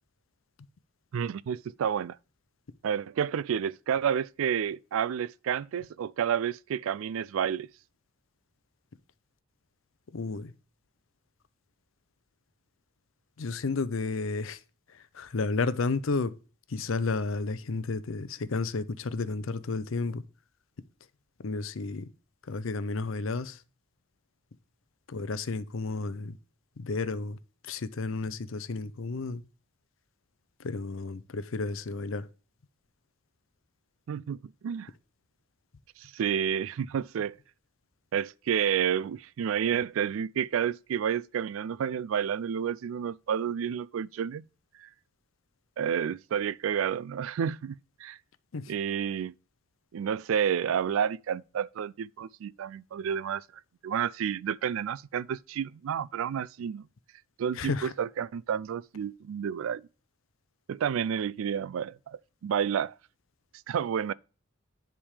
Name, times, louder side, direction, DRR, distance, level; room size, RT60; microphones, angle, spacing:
voice 1, 1.1-2.2 2.8-7.7 34.1-34.4 34.6-34.9 36.0-37.4 38.1-44.4 44.8-44.9 45.8-48.2 48.7-49.3 49.9-53.4 53.8-56.9 57.4-59.8 60.7-62.9 63.7-64.1, right 8 dB, 75° right, 0.3 m, -30 dB
voice 2, 10.1-10.5 13.4-14.6 14.9-16.3 16.7-20.2 21.4-22.0 22.5-23.6 25.1-26.4 26.8-27.4 27.7-29.4 30.6-32.3 48.5-48.6 57.6-57.9, left 3 dB, 70° left, 0.6 m, -32 dB
10.0 x 3.6 x 4.9 m
head